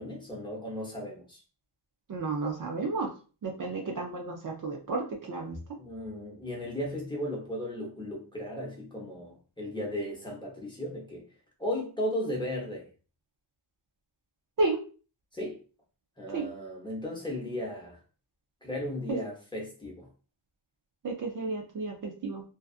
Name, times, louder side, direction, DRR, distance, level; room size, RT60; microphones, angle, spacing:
voice 1, 0.0-1.4 5.8-11.2 11.6-12.9 15.3-15.6 16.2-18.0 18.6-20.1, left 1 dB, 10° left, -2 dB, 0.7 m, -35 dB
voice 2, 2.1-3.1 3.4-5.6 14.6-14.8 16.3-16.5 21.0-22.4, right 3 dB, 45° right, 0 dB, 0.5 m, -32 dB
2.6 x 2.4 x 2.3 m, 0.37 s
wide cardioid pair, 135°, 46 cm